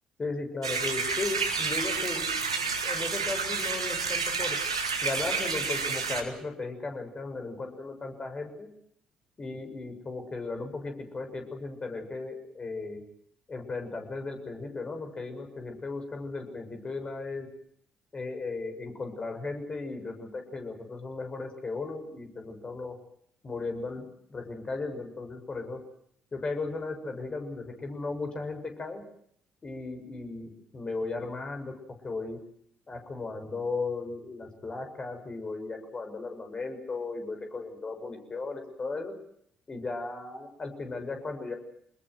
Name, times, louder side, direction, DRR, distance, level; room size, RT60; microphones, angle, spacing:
voice 1, 0.2-4.6 5.0-8.7 9.4-13.0 13.5-17.5 18.1-23.0 23.4-24.0 24.3-25.8 26.3-29.0 29.6-31.7 32.0-32.4 32.9-39.1 39.7-41.6, left 3 dB, 35° left, 5 dB, 7.0 m, -36 dB
sound 1, 0.6-6.2, right 5 dB, 90° right, 2.1 m, -30 dB
26.5 x 21.0 x 8.0 m, 0.68 s
figure-of-eight pair, 45°, 3 cm